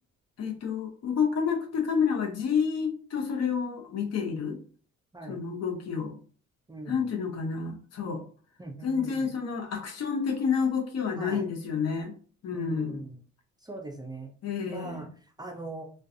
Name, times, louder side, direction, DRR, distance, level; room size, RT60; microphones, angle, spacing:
voice 1, 0.4-4.6 5.3-6.1 6.9-8.2 8.8-12.1 12.4-13.0 14.4-15.1, left 6 dB, 55° left, 2 dB, 0.7 m, -29 dB
voice 2, 6.7-7.1 8.6-9.3 11.2-11.4 12.5-13.2 13.6-14.3 14.7-15.1 15.4-15.9, right 2 dB, 15° right, 2 dB, 0.4 m, -40 dB
2.4 x 2.3 x 2.6 m, 0.43 s
cardioid pair, 90°, 30 cm